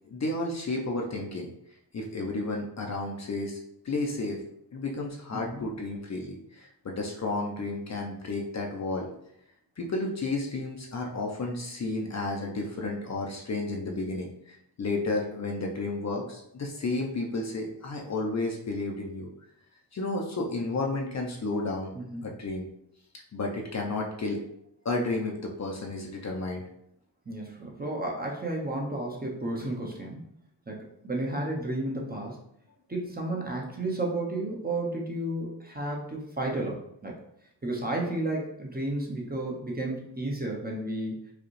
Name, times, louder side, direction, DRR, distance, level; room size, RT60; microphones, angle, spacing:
voice 1, 0.1-1.5 1.9-3.6 3.8-4.4 4.7-9.1 9.8-19.3 19.9-21.9 22.2-22.7 23.3-24.4 24.8-26.6, left 2 dB, 35° left, 0 dB, 0.6 m, -32 dB
voice 2, 5.3-5.6 22.0-22.3 27.3-30.2 30.7-32.4 32.9-37.1 37.6-41.2, right 1 dB, 20° right, -1 dB, 0.7 m, -32 dB
4.8 x 2.3 x 3.1 m, 0.75 s
wide cardioid pair, 110°, 45 cm